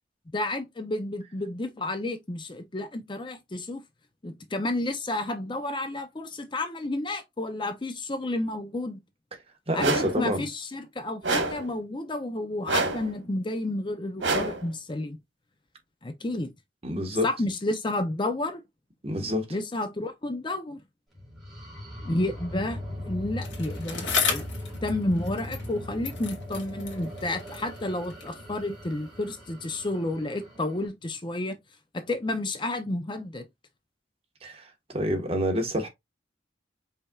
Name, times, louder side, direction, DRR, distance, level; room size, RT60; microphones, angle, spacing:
voice 1, 0.3-3.8 4.2-9.0 9.7-15.2 16.0-16.5 17.2-18.6 19.5-20.8 22.0-22.8 23.1-24.5 24.8-31.6 31.9-33.5, left 2 dB, 25° left, 0.6 m, -31 dB
voice 2, 9.7-10.5 16.8-17.3 19.0-19.5 34.4-34.7 34.9-35.9, equal, 35° right, 1.4 m, -27 dB
sound 1, 9.8-10.2 11.2-11.7 12.7-13.1 14.2-14.7, right 3 dB, 85° right, 1.4 m, -27 dB
sound 2, 21.1-30.9, left 1 dB, ahead, 2.6 m, -39 dB
Bicycle, 23.4-25.8 26.0-28.4 29.2-29.3, left 6 dB, 80° left, 1.7 m, -33 dB
5.3 x 4.2 x 2.3 m
head